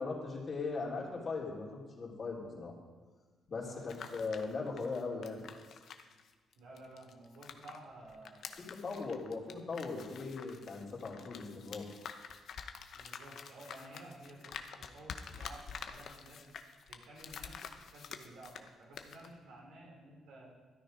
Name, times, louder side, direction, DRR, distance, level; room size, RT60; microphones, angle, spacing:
voice 1, 0.0-2.7 3.5-5.4 8.8-11.8, left 4 dB, 45° left, -3 dB, 3.3 m, -39 dB
sound 1, 3.7-7.8 8.1-18.7 18.9-19.3, left 7 dB, 65° left, 0.9 m, -48 dB
voice 2, 6.6-8.7 12.9-16.4 16.9-17.6 17.9-20.5, right 1 dB, 85° right, -3 dB, 4.2 m, -53 dB
13.0 x 9.6 x 5.2 m, 1.4 s
cardioid pair, 90°, 0 cm